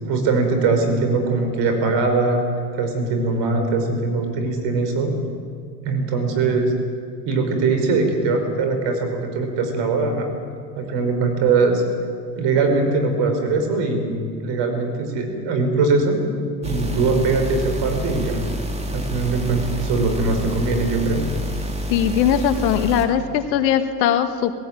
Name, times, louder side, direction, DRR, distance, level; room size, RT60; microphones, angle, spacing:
voice 1, 0.0-2.4 2.8-5.1 5.8-6.7 7.2-10.3 10.8-11.8 12.3-16.2 16.6-18.4 18.9-21.2, right 3 dB, 55° right, 5 dB, 5.6 m, -21 dB
sound 1, 16.6-23.1, equal, 10° right, 2.9 m, -28 dB
voice 2, 21.9-24.5, left 9 dB, 80° left, 9 dB, 1.8 m, -20 dB
19.5 x 17.0 x 9.2 m, 2.3 s
hypercardioid pair, 95°, 50 cm